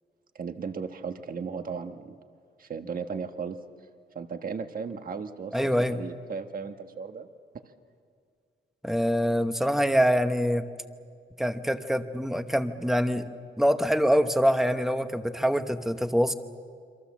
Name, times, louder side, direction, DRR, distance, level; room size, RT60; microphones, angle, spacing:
voice 1, 0.3-2.2 2.6-3.6 4.1-7.3, right 5 dB, 45° right, 7 dB, 1.3 m, -36 dB
voice 2, 5.5-6.0 8.8-10.7 11.4-13.3 13.6-16.3, equal, ahead, 8 dB, 1.0 m, -25 dB
28.0 x 25.5 x 7.3 m, 2.2 s
wide cardioid pair, 175°, 20 cm